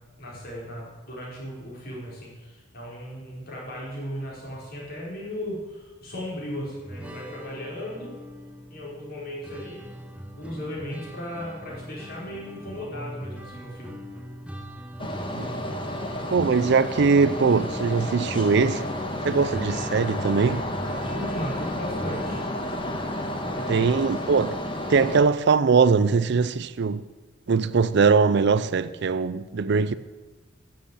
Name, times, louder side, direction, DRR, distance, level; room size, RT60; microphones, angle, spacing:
voice 1, 0.2-8.2 8.7-9.9 10.4-14.0 21.0-22.4 23.4-23.9, equal, 50° left, 4.9 m, -36 dB
sound 1, 6.9-22.5, equal, 5° right, 1.1 m, -41 dB
sound 2, 15.0-25.2, left 1 dB, 25° left, 1.4 m, -31 dB
voice 2, 16.3-18.8 19.2-20.6 23.7-24.6 24.9-27.0 27.5-29.9, right 5 dB, 60° right, 0.5 m, -21 dB
11.5 x 7.8 x 8.5 m
head